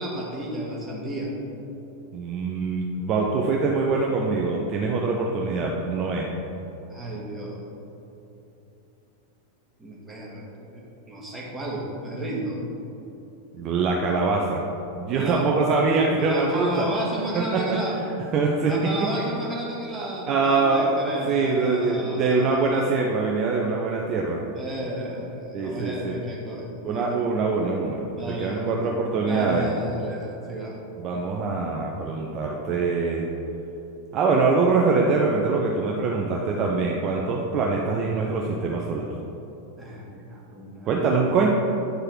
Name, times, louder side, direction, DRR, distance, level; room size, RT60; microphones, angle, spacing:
voice 1, 0.0-1.3 6.9-7.6 9.8-12.6 15.1-15.5 16.2-18.0 18.7-22.7 24.5-27.2 28.2-30.8 39.8-41.4, right 1 dB, 10° right, -5 dB, 1.8 m, -33 dB
voice 2, 2.1-6.3 13.5-14.6 14.9-16.9 17.3-17.8 18.3-18.7 20.3-20.9 21.3-24.4 25.5-26.2 26.8-28.0 28.4-29.7 31.0-33.3 34.1-39.1 40.9-41.5, right 4 dB, 35° right, -1 dB, 0.7 m, -23 dB
9.3 x 4.8 x 4.5 m, 3.0 s
figure-of-eight pair, 90°, 0 cm